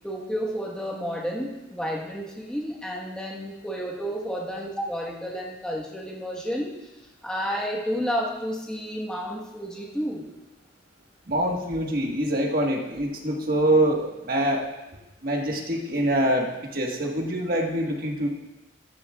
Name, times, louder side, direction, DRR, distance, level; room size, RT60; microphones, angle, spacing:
voice 1, 0.0-6.9 7.2-10.2, equal, 5° left, -3 dB, 1.3 m, -31 dB
voice 2, 11.3-14.7 15.2-18.3, right 1 dB, 50° right, 0 dB, 1.6 m, -25 dB
15.0 x 11.5 x 2.4 m, 1.0 s
head